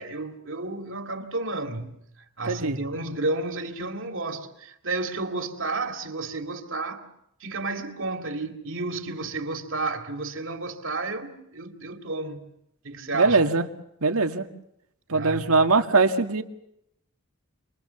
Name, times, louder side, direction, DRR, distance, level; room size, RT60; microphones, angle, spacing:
voice 1, 0.0-2.0 2.4-7.0 7.4-12.5 12.8-13.4 15.1-15.5, right 3 dB, 60° right, 2.7 m, -32 dB
voice 2, 2.4-2.8 13.1-13.7 14.0-14.5 15.1-16.4, right 3 dB, 80° right, 2.0 m, -21 dB
28.5 x 22.5 x 7.1 m
head